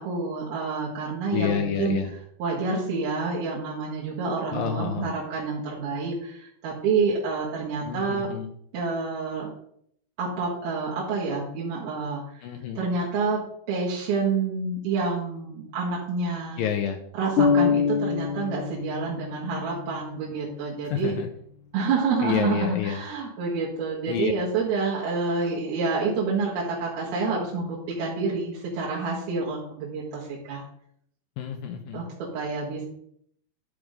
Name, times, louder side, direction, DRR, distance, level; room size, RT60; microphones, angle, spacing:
voice 1, 0.0-2.0 2.4-8.3 8.7-9.5 10.2-12.2 12.8-13.4 13.7-16.6 17.2-21.1 21.7-30.6 31.9-32.8, right 4 dB, 65° right, -5 dB, 3.5 m, -28 dB
voice 2, 1.3-2.1 4.5-5.1 7.8-8.5 12.4-12.8 16.6-17.0 20.8-21.3 22.2-23.0 24.1-24.3 31.4-32.1, left 8 dB, 85° left, 5 dB, 2.0 m, -29 dB
sound 1, 17.4-21.1, left 6 dB, 65° left, 2.3 m, -26 dB
11.5 x 4.8 x 5.3 m, 0.68 s
omnidirectional pair, 5.0 m